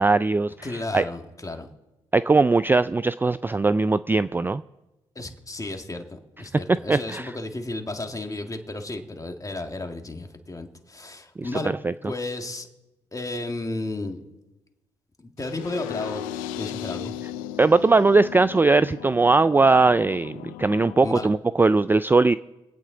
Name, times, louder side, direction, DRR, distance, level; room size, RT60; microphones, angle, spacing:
voice 1, 0.0-0.5 0.9-1.0 2.1-4.6 6.9-7.3 11.4-11.5 11.8-11.9 17.6-22.4, right 3 dB, 15° right, 15 dB, 0.3 m, -19 dB
voice 2, 0.6-1.7 5.2-11.7 12.0-12.7 13.1-14.2 15.2-16.2 16.6-17.2 21.0-21.3, left 2 dB, 25° left, 5 dB, 1.9 m, -33 dB
sound 1, 15.4-21.4, left 11 dB, 85° left, 0.4 m, -37 dB
23.5 x 8.6 x 3.9 m, 1.0 s
hypercardioid pair, 50°, 14 cm